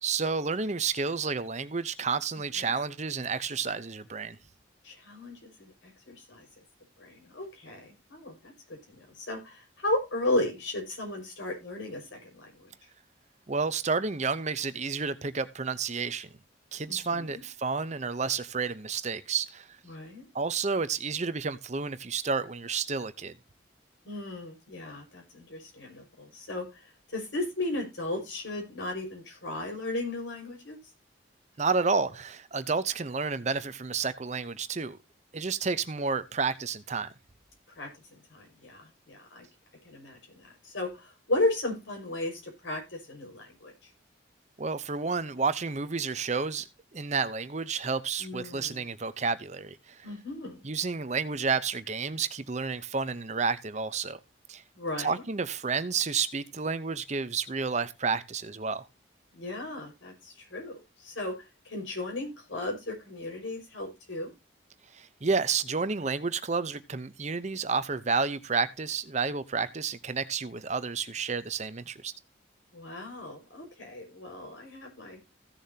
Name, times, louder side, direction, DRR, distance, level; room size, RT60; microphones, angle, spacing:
voice 1, 0.0-4.4 13.5-16.3 16.7-19.7 20.3-23.3 31.6-35.0 35.3-37.1 44.6-46.7 46.9-50.1 50.6-54.2 54.5-54.6 55.0-58.8 64.9-72.1, right 5 dB, 40° right, 0.7 m, -30 dB
voice 2, 4.8-5.7 6.1-6.5 7.0-8.5 8.9-12.7 16.9-17.4 19.9-20.3 24.0-26.6 27.1-30.8 37.8-37.9 38.3-39.5 39.8-43.7 48.2-48.8 50.0-50.6 54.7-55.2 59.3-61.3 61.6-64.3 72.7-75.2, left 2 dB, 85° left, 5.6 m, -35 dB
16.0 x 7.1 x 2.8 m
head